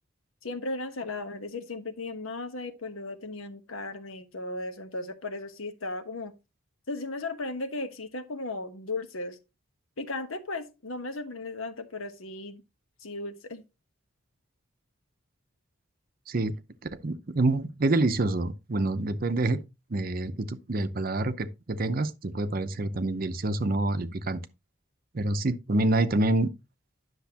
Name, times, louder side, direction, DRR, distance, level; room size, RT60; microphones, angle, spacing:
voice 1, 0.4-6.3 6.9-9.4 10.0-12.6 13.0-13.7, left 2 dB, 80° left, 1.1 m, -36 dB
voice 2, 16.9-19.6 19.9-24.4 25.1-26.5, right 2 dB, 45° right, 0.6 m, -27 dB
10.5 x 6.4 x 2.9 m
head